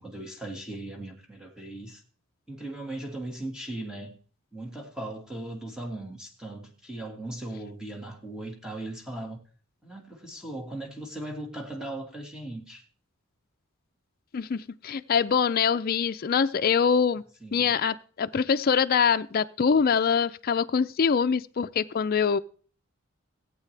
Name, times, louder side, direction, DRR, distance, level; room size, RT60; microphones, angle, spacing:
voice 1, 0.0-2.0 2.5-4.2 4.5-9.4 9.8-12.8 17.4-17.8, right 1 dB, 5° right, 1.8 m, -38 dB
voice 2, 14.3-17.2 17.5-22.4, left 6 dB, 45° left, 0.4 m, -24 dB
18.0 x 8.3 x 3.3 m
head